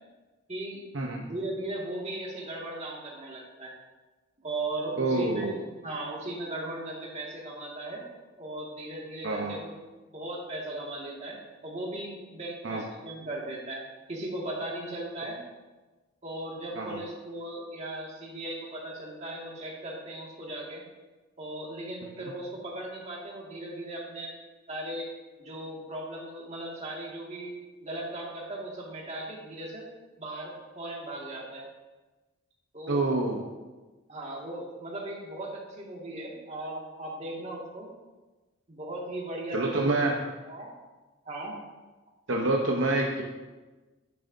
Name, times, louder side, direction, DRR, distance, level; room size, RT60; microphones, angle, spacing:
voice 1, 0.5-0.8 1.2-3.7 4.4-5.6 5.8-8.0 8.4-9.7 10.1-11.4 11.6-13.8 14.1-15.4 16.2-20.8 21.4-24.3 24.7-25.1 25.4-27.5 27.8-29.8 30.2-31.6 32.7-33.0 34.1-37.9 38.7-39.8 40.4-40.7 41.3-41.5, right 1 dB, 30° right, -3 dB, 2.0 m, -37 dB
voice 2, 5.0-5.6 9.2-9.6 12.6-12.8 16.8-17.0 32.9-33.4 39.5-40.2 42.3-43.2, right 2 dB, 65° right, 0 dB, 0.9 m, -27 dB
10.5 x 10.0 x 2.7 m, 1.2 s
head